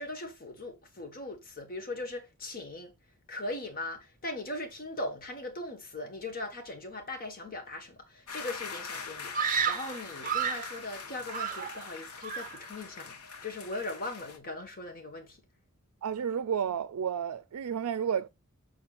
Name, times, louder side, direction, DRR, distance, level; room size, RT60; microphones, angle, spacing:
voice 1, 0.0-2.9 3.3-15.4, left 2 dB, 40° left, 1.5 m, -39 dB
sound 1, 8.3-14.4, left 5 dB, 90° left, 1.1 m, -43 dB
Screaming, 9.3-10.8 11.3-11.9 12.2-12.6, right 7 dB, 40° right, 0.6 m, -31 dB
voice 2, 16.0-18.3, right 8 dB, 90° right, 0.4 m, -31 dB
6.8 x 6.2 x 2.5 m
head